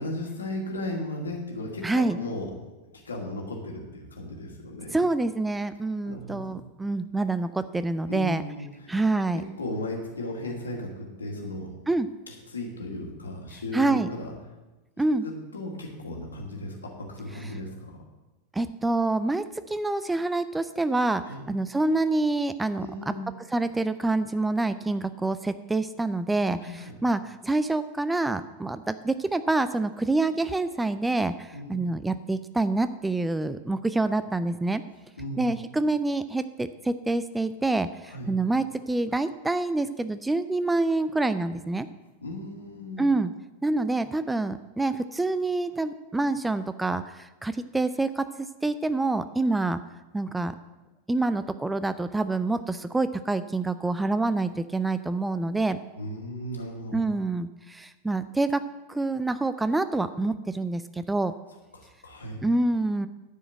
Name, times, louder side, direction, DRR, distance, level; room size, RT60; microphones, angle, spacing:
voice 1, 0.0-2.5 2.9-5.0 6.0-6.6 8.1-8.9 9.3-11.7 12.3-14.3 15.2-18.0 21.3-21.4 22.8-23.3 26.6-26.9 31.5-31.8 35.2-35.5 38.1-38.3 42.2-43.1 56.0-57.0 61.7-62.4, left 1 dB, 75° left, 0 dB, 2.2 m, -36 dB
voice 2, 1.8-2.2 4.9-8.4 8.9-9.4 11.9-12.1 13.7-14.1 15.0-15.3 18.5-23.1 23.5-34.8 35.4-41.9 43.0-43.3 43.6-49.8 50.1-50.5 51.1-55.8 56.9-58.6 58.9-61.3 62.4-63.1, right 2 dB, 10° right, 12 dB, 0.4 m, -27 dB
11.0 x 5.0 x 7.7 m, 1.1 s
figure-of-eight pair, 90°, 0 cm